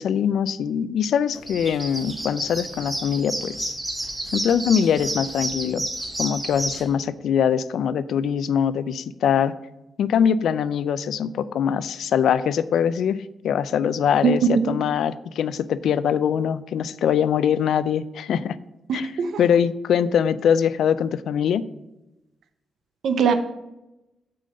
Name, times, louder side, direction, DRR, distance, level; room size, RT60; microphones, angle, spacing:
voice 1, 0.0-3.7 4.3-5.8 6.2-9.5 10.0-18.6 18.9-19.1 19.4-21.7, left 8 dB, 90° left, 16 dB, 0.3 m, -22 dB
sound 1, 1.3-6.8, right 1 dB, 10° right, 1.3 m, -30 dB
voice 2, 14.2-14.7 18.9-19.4 23.0-23.3, right 6 dB, 70° right, 9 dB, 0.7 m, -21 dB
8.6 x 3.9 x 6.4 m, 0.96 s
wide cardioid pair, 170°, 0 cm